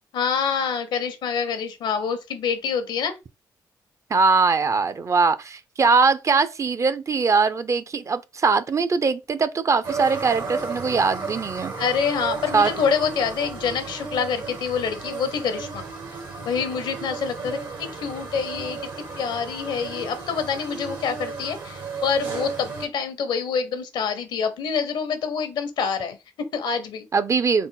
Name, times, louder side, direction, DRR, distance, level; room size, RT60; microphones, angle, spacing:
voice 1, 0.1-3.2 11.8-15.8 16.4-27.1, left 6 dB, 75° left, 0.8 m, -26 dB
voice 2, 4.1-11.7 12.5-12.7 27.1-27.7, right 4 dB, 40° right, 0.4 m, -21 dB
sound 1, 9.8-22.9, right 4 dB, 75° right, 1.4 m, -34 dB
3.8 x 2.0 x 3.8 m
supercardioid pair, 60°, 8 cm